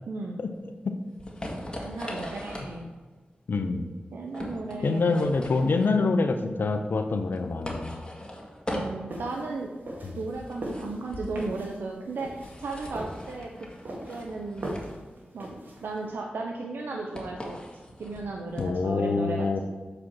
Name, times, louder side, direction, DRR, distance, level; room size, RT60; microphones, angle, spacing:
voice 1, 0.1-0.4 1.8-2.9 4.1-5.3 8.7-9.7 10.1-13.7 14.1-14.7 15.3-15.5 15.8-17.6 18.0-19.6, right 3 dB, 90° right, 1 dB, 0.6 m, -35 dB
sound 1, 0.6-18.9, left 1 dB, 25° left, 2.0 m, -40 dB
voice 2, 3.5-3.9 4.8-8.0 18.6-19.6, left 3 dB, 75° left, 7 dB, 0.6 m, -25 dB
sound 2, 9.1-16.0, right 1 dB, 65° right, 2.0 m, -40 dB
7.2 x 4.9 x 4.6 m, 1.4 s
cardioid pair, 40°, 3 cm